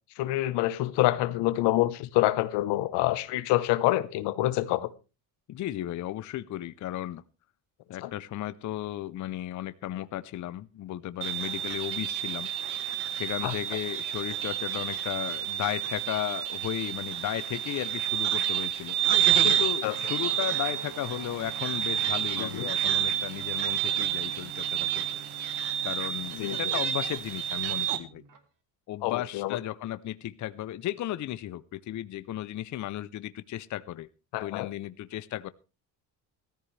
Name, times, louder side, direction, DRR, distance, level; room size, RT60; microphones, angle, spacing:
voice 1, 0.2-4.9 8.0-8.1 13.4-13.5 19.8-19.9 22.4-22.7 26.4-26.6 29.0-29.6 34.3-34.7, left 16 dB, 85° left, 1.1 m, -26 dB
voice 2, 5.5-7.2 7.9-12.5 13.1-19.0 19.4-25.0 25.8-28.2 28.9-34.1 34.4-35.5, left 13 dB, 45° left, 0.6 m, -35 dB
sound 1, 11.2-28.0, right 10 dB, 75° right, 1.6 m, -29 dB
Guitar, 19.9-28.4, right 5 dB, 50° right, 1.9 m, -48 dB
15.5 x 14.0 x 3.3 m
cardioid pair, 110°, 40 cm